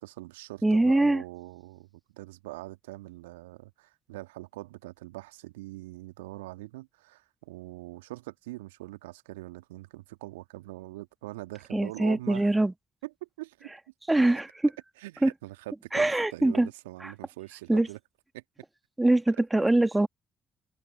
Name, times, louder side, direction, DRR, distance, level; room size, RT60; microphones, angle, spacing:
voice 1, 0.0-12.5 13.0-13.7 15.0-18.0 18.3-18.4, right 19 dB, 75° right, 1.9 m, -43 dB
voice 2, 0.6-1.2 11.7-12.7 14.1-14.5 15.2-15.3 15.9-16.7 17.0-17.1 17.7-17.9 19.0-20.1, right 2 dB, 15° right, 1.7 m, -23 dB
figure-of-eight pair, 40°, 0 cm